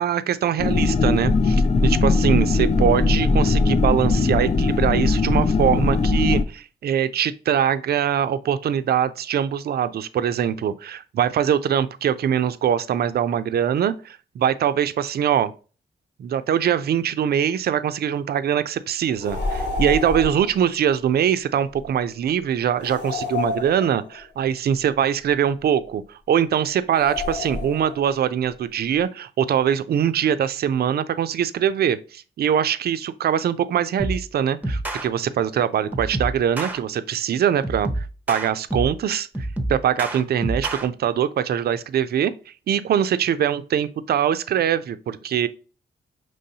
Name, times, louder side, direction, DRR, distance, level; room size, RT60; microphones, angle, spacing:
voice 1, 0.0-15.5 16.2-39.3 39.7-42.3 42.7-45.5, right 9 dB, 65° right, 0.4 m, -22 dB
sound 1, 0.6-6.4, left 3 dB, 35° left, 0.5 m, -19 dB
sound 2, 19.2-20.5 22.8-24.2 26.9-28.0, left 3 dB, 80° left, 1.5 m, -29 dB
sound 3, 34.0-34.3 34.6-35.1 35.9-36.8 37.6-39.0 39.3-40.9, right 1 dB, 10° right, 0.6 m, -28 dB
5.4 x 3.1 x 2.7 m
cardioid pair, 85°, 18 cm